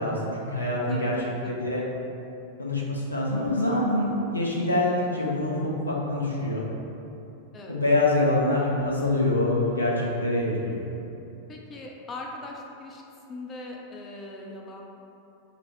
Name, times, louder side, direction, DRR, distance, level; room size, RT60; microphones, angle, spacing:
voice 1, 0.0-1.2 1.4-1.8 2.6-6.6 7.7-11.0, left 2 dB, 85° left, -4 dB, 0.6 m, -25 dB
voice 2, 0.9-1.7 7.5-7.8 11.5-13.0 13.3-14.8, left 2 dB, 25° left, 0 dB, 0.4 m, -40 dB
4.2 x 2.0 x 4.2 m, 2.9 s
figure-of-eight pair, 90°, 0 cm